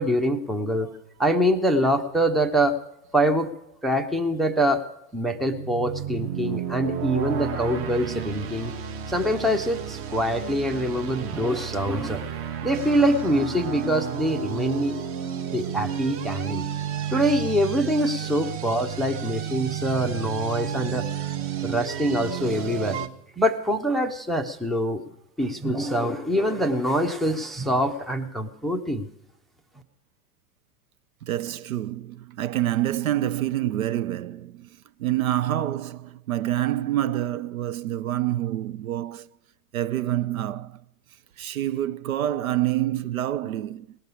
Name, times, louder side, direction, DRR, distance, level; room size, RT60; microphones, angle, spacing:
voice 1, 0.0-2.8 3.1-3.5 3.8-4.8 5.1-8.7 9.1-14.9 15.5-16.7 17.1-21.1 21.6-23.0 23.4-25.0 25.4-29.1, equal, ahead, 0.6 m, -24 dB
sound 1, 5.2-23.1, right 8 dB, 25° right, 1.0 m, -32 dB
voice 2, 31.3-34.7 35.0-39.3 39.7-40.8 41.4-44.0, right 13 dB, 60° right, 0.6 m, -27 dB
19.0 x 6.7 x 9.9 m
figure-of-eight pair, 95°, 48 cm